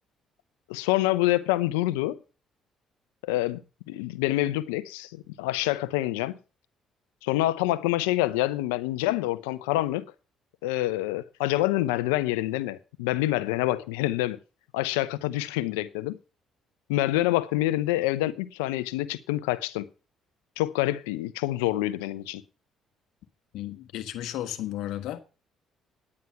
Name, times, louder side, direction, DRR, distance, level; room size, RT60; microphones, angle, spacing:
voice 1, 0.7-2.2 3.2-3.6 3.9-6.4 7.2-10.0 10.6-14.4 14.7-16.2 16.9-19.9 20.6-22.4, left 16 dB, 90° left, 0.7 m, -26 dB
voice 2, 23.5-25.2, left 13 dB, 70° left, 1.3 m, -34 dB
9.7 x 9.4 x 5.8 m
hypercardioid pair, 60°, 0 cm